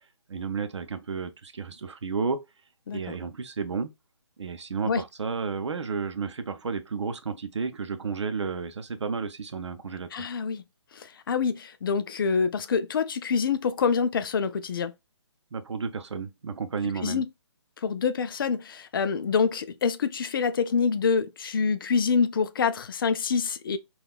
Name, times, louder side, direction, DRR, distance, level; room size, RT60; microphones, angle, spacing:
voice 1, 0.3-2.4 2.9-3.9 4.4-10.3 15.5-17.2, right 5 dB, 75° right, 0.6 m, -32 dB
voice 2, 10.1-10.6 10.9-14.9 17.0-17.3 17.8-23.8, left 5 dB, 50° left, 0.4 m, -26 dB
3.6 x 2.3 x 2.2 m
figure-of-eight pair, 150°, 15 cm